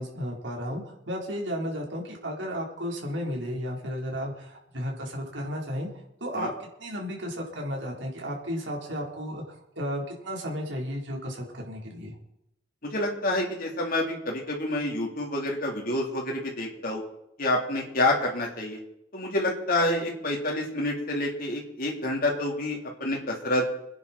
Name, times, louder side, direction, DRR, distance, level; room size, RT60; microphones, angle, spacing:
voice 1, 0.0-5.9 6.2-12.2, equal, 70° right, -1 dB, 4.0 m, -33 dB
voice 2, 12.8-17.0 17.4-18.8 19.1-23.7, left 1 dB, 50° left, -1 dB, 3.7 m, -28 dB
26.5 x 10.0 x 4.4 m, 0.81 s
head